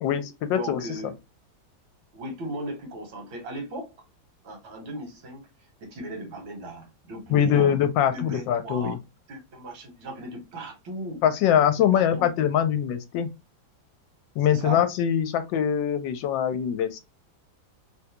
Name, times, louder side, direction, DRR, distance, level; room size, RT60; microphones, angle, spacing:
voice 1, 0.0-0.8 7.3-9.0 11.2-13.3 14.4-17.0, left 9 dB, 75° left, 1.2 m, -23 dB
voice 2, 0.5-1.1 2.1-3.9 4.4-5.5 5.8-7.8 8.1-9.0 9.3-11.2 11.9-12.3 14.5-14.8, right 1 dB, 85° right, 1.9 m, -37 dB
3.7 x 2.2 x 2.8 m
omnidirectional pair, 2.1 m